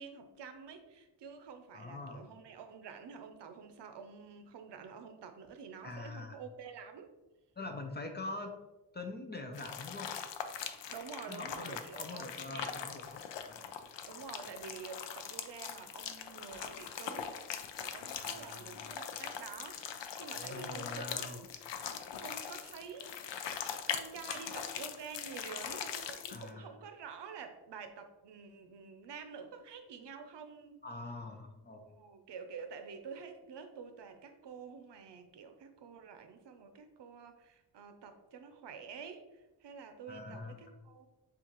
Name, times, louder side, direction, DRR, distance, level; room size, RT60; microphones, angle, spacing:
voice 1, 0.0-7.1 10.9-12.8 14.1-21.4 22.2-23.2 23.9-30.8 31.9-41.1, right 6 dB, 75° right, 7 dB, 0.6 m, -48 dB
voice 2, 1.7-2.3 5.8-6.4 7.6-8.6 8.9-10.1 11.3-13.7 18.2-19.0 20.2-21.4 26.3-26.7 30.8-31.9 40.1-40.7, left 2 dB, 25° left, 4 dB, 0.4 m, -44 dB
sound 1, 9.5-26.5, left 8 dB, 80° left, 0.5 m, -42 dB
7.1 x 2.5 x 2.9 m, 1.1 s
wide cardioid pair, 170°, 43 cm